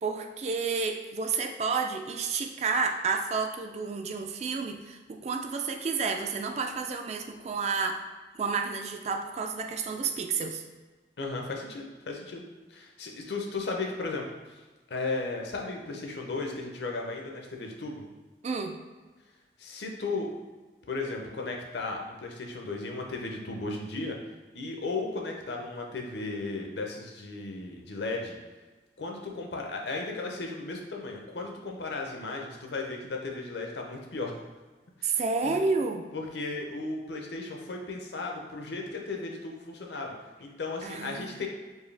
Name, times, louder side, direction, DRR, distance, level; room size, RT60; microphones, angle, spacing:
voice 1, 0.0-8.0 8.3-10.6 18.4-18.8 35.0-36.1 40.8-41.4, right 4 dB, 35° right, 5 dB, 0.3 m, -30 dB
voice 2, 11.2-12.4 12.7-14.6 14.9-18.0 19.6-20.3 20.9-24.2 24.5-28.4 29.0-34.4 35.0-35.6 36.1-40.1 40.4-41.5, left 3 dB, 65° left, 1 dB, 0.7 m, -35 dB
4.6 x 2.7 x 3.3 m, 1.3 s
head